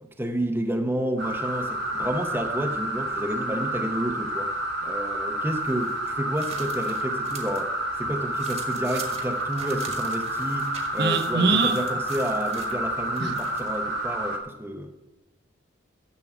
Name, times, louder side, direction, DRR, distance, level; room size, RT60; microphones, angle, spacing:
voice 1, 0.0-4.5 4.8-7.7 8.0-14.9, equal, 10° right, 4 dB, 0.7 m, -30 dB
sound 1, 1.2-14.4, right 1 dB, 70° right, 2.0 m, -29 dB
sound 2, 5.5-7.7 8.0-13.8, right 5 dB, 30° right, 1.5 m, -44 dB
voice 2, 11.0-11.8 13.2-13.3, right 3 dB, 55° right, 7 dB, 1.0 m, -22 dB
11.0 x 7.5 x 7.0 m, 1.0 s
head